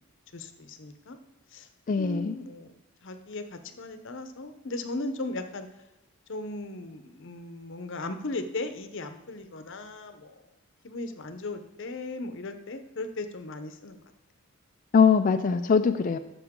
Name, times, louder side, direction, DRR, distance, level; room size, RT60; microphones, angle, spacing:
voice 1, 0.3-1.2 1.5-1.7 2.0-2.7 3.0-5.7 6.3-10.3 10.8-14.0, left 2 dB, 55° left, 8 dB, 0.7 m, -37 dB
voice 2, 1.9-2.3 14.9-16.2, left 6 dB, 35° left, 8 dB, 0.3 m, -22 dB
12.0 x 7.1 x 3.6 m, 0.95 s
head